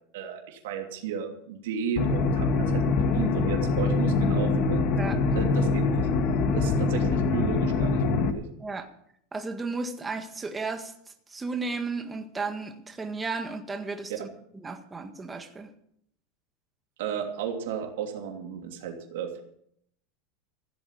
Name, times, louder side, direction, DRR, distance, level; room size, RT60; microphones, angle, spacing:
voice 1, 0.1-2.8 3.1-4.9 5.3-6.1 6.5-8.5 17.0-19.4, right 7 dB, 80° right, 2 dB, 2.9 m, -33 dB
sound 1, 2.0-8.3, left 4 dB, 50° left, 1.5 m, -24 dB
voice 2, 9.3-10.9 11.3-14.3 14.6-15.7, right 3 dB, 15° right, 6 dB, 1.7 m, -34 dB
15.5 x 7.9 x 8.4 m, 0.71 s
supercardioid pair, 145°, 0 cm